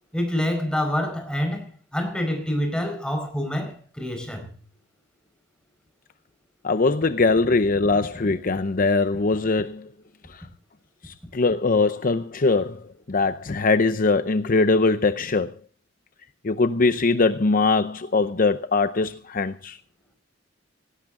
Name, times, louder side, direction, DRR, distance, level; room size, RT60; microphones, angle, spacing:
voice 1, 0.1-4.5, equal, 5° left, 4.8 m, -27 dB
voice 2, 6.6-9.9 11.0-12.8 13.1-15.5 16.4-19.8, left 3 dB, 45° left, 0.7 m, -21 dB
18.0 x 17.0 x 3.7 m
head